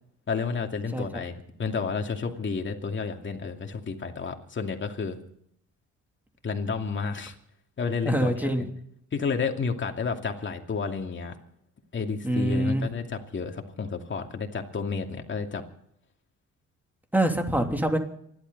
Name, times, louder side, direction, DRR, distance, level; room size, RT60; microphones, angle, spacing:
voice 1, 0.3-5.2 6.4-7.3 7.8-8.7 9.1-11.4 11.9-15.6, left 5 dB, 40° left, 4 dB, 2.6 m, -31 dB
voice 2, 0.9-1.2 8.0-8.6 12.2-12.8 17.1-18.0, right 1 dB, 5° right, 4 dB, 3.0 m, -25 dB
28.0 x 12.0 x 4.1 m, 0.71 s
cardioid pair, 90°, 30 cm